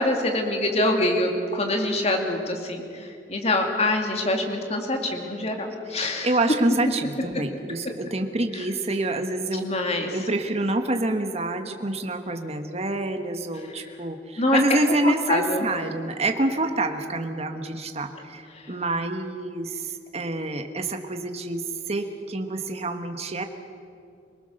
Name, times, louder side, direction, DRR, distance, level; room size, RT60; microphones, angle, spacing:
voice 1, 0.0-6.3 8.5-8.6 9.5-10.1 14.4-14.6 15.0-15.7 18.7-18.8, left 1 dB, 35° left, 3 dB, 2.5 m, -25 dB
voice 2, 6.2-9.7 10.1-18.4 18.7-21.6 21.9-23.5, right 2 dB, 35° right, 6 dB, 1.5 m, -27 dB
26.5 x 19.5 x 6.6 m, 2.5 s
head